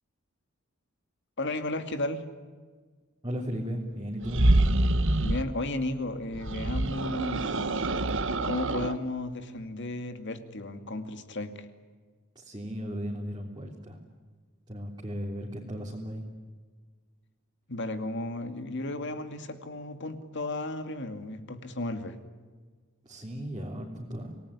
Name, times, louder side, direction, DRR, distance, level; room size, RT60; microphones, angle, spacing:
voice 1, 1.4-2.2 5.2-7.7 8.4-11.7 17.7-22.2, left 2 dB, 55° left, 8 dB, 2.4 m, -34 dB
voice 2, 3.2-4.5 12.3-14.0 14.7-16.2 23.0-24.4, equal, 20° right, -3 dB, 3.4 m, -36 dB
sound 1, 4.2-5.5 6.3-9.0, right 1 dB, 65° right, 1.4 m, -26 dB
27.5 x 18.5 x 10.0 m, 1.5 s
head